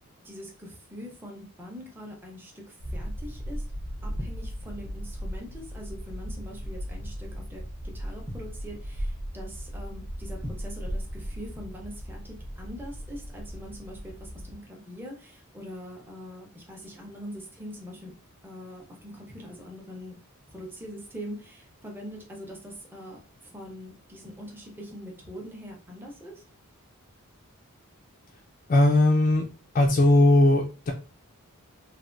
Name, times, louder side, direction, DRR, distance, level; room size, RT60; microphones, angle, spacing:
voice 1, 0.2-3.6 4.0-18.1 18.4-20.2 20.5-23.2 23.5-26.3, equal, 10° right, -1 dB, 0.6 m, -42 dB
sound 1, 2.8-14.5, equal, 55° right, 0.6 m, -37 dB
voice 2, 28.7-29.4 29.7-30.9, left 1 dB, 35° left, 0 dB, 0.4 m, -19 dB
3.2 x 2.2 x 2.5 m, 0.34 s
head